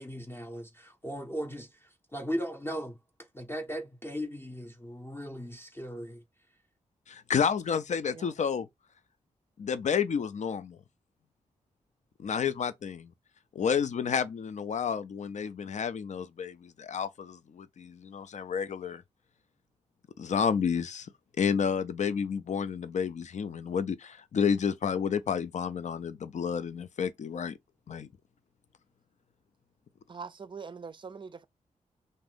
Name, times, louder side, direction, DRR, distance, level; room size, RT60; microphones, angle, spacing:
voice 1, 0.0-3.0 3.3-6.2, equal, 15° left, 0.7 m, -37 dB
voice 2, 7.1-8.7 9.6-10.8 12.2-13.1 13.5-19.0 20.2-21.1 21.4-27.6 27.9-28.1, left 7 dB, 60° left, 0.4 m, -30 dB
voice 3, 30.1-31.5, right 5 dB, 35° right, 0.4 m, -43 dB
2.6 x 2.5 x 3.4 m
cardioid pair, 50°, 14 cm